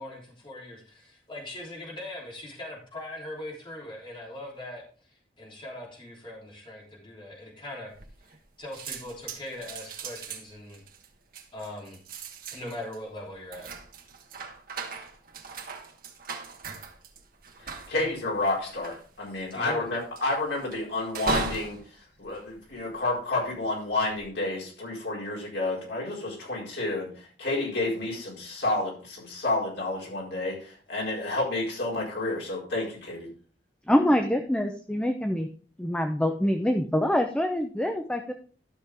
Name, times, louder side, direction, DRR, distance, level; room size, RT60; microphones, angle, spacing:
voice 1, 0.0-4.8 5.4-7.9 8.6-10.8 11.5-12.0 12.5-13.7 17.9-18.0 19.5-19.9, left 1 dB, 30° left, -3 dB, 3.3 m, -40 dB
sound 1, 7.9-8.5 8.7-23.3 23.8-24.3, right 4 dB, 55° right, 1.3 m, -38 dB
voice 2, 17.6-33.3, left 2 dB, 75° left, -3 dB, 4.9 m, -30 dB
voice 3, 33.9-35.5 35.8-38.3, equal, 5° left, 5 dB, 0.7 m, -25 dB
12.5 x 6.4 x 3.6 m, 0.41 s
head